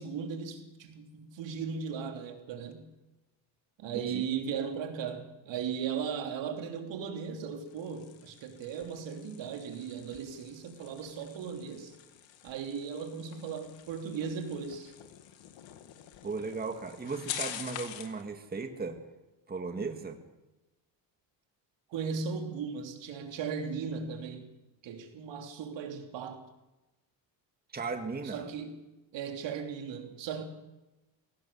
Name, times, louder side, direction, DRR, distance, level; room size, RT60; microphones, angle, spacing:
voice 1, 0.0-2.9 3.8-11.9 12.4-14.9 21.9-24.5 24.8-26.4 28.2-28.8 29.1-30.4, right 6 dB, 75° right, 3.2 m, -37 dB
voice 2, 3.9-4.3 9.1-9.3 16.2-19.0 19.5-20.2 27.7-28.5, right 4 dB, 20° right, 1.8 m, -36 dB
sound 1, 7.5-18.2, left 10 dB, 80° left, 2.1 m, -46 dB
21.5 x 17.5 x 7.0 m
cardioid pair, 130°, 44 cm